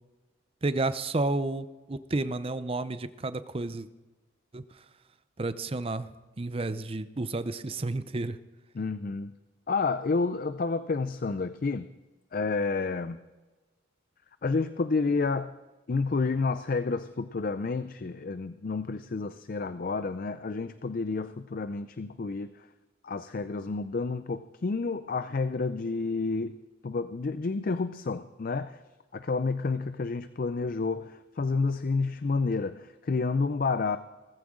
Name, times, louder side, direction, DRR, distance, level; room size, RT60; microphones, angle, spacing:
voice 1, 0.6-3.9 4.5-4.6 5.4-6.1 6.4-8.4, right 2 dB, 30° right, 13 dB, 0.6 m, -31 dB
voice 2, 8.7-9.3 9.7-11.9 12.3-13.2 14.4-15.5 15.9-22.7 23.0-26.6 26.8-28.8 29.1-34.0, left 4 dB, 50° left, 12 dB, 0.4 m, -30 dB
18.0 x 15.0 x 3.8 m, 1.2 s
head